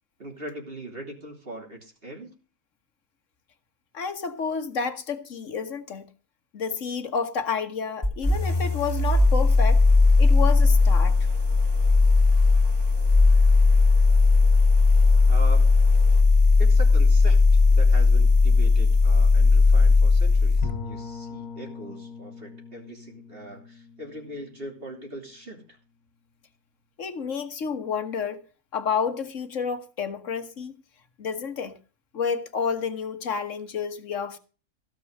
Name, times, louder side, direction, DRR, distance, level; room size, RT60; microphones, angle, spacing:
voice 1, 0.2-2.3 15.3-15.7 16.6-25.8, right 1 dB, 40° right, 3.3 m, -40 dB
voice 2, 3.9-6.0 6.5-9.8 10.2-11.2 27.0-28.4 28.7-30.7 31.2-31.7 32.1-34.4, left 6 dB, 55° left, 1.7 m, -30 dB
sound 1, 8.0-20.7, left 3 dB, 20° left, 3.7 m, -18 dB
sound 2, 8.2-16.2, right 1 dB, 80° right, 3.7 m, -48 dB
Bowed string instrument, 20.6-25.4, left 5 dB, 75° left, 1.6 m, -40 dB
16.5 x 6.9 x 6.5 m
omnidirectional pair, 1.6 m